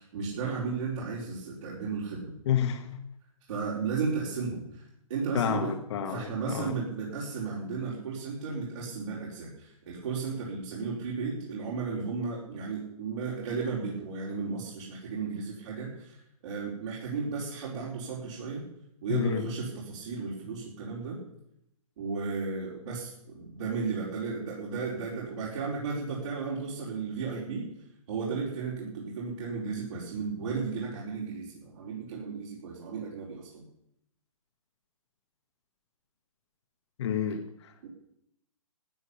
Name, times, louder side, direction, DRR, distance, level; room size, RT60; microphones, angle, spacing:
voice 1, 0.0-2.3 3.5-4.8 5.1-5.7 6.1-16.2 16.4-18.6 19.0-21.2 22.0-27.6 28.1-33.6 37.8-37.9, right 5 dB, 55° right, -6 dB, 4.9 m, -34 dB
voice 2, 2.4-2.9 5.3-6.7 19.1-19.4 37.0-37.9, left 8 dB, 50° left, 7 dB, 1.7 m, -29 dB
15.0 x 8.0 x 9.9 m, 0.78 s
hypercardioid pair, 145°, 19 cm